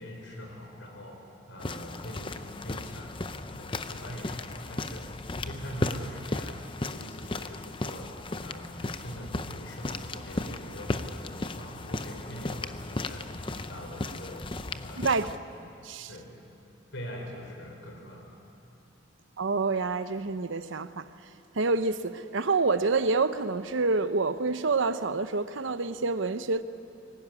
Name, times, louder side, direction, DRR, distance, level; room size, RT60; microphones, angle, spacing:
voice 1, 0.0-3.2 3.5-13.3 13.7-15.1 15.7-16.3 16.9-18.3, equal, 75° left, 4.8 m, -43 dB
sound 1, 1.6-15.4, left 2 dB, 25° left, 0.6 m, -36 dB
voice 2, 15.0-15.3 15.6-16.1 19.4-21.1 21.5-26.6, right 3 dB, 75° right, 0.8 m, -27 dB
24.5 x 16.5 x 9.7 m
head